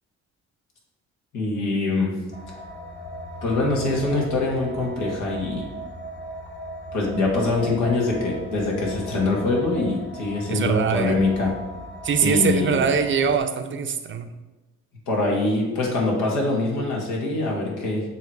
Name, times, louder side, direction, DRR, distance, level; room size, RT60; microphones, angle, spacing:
voice 1, 1.3-2.1 3.4-5.6 6.9-11.5 12.2-12.7 15.1-18.0, left 2 dB, 85° left, -2 dB, 1.7 m, -24 dB
sound 1, 2.3-13.4, right 1 dB, 35° left, 1.1 m, -37 dB
voice 2, 10.5-11.3 12.0-14.3, right 6 dB, 40° right, 7 dB, 0.6 m, -23 dB
7.0 x 3.1 x 4.6 m, 1.1 s
cardioid pair, 90°, 30 cm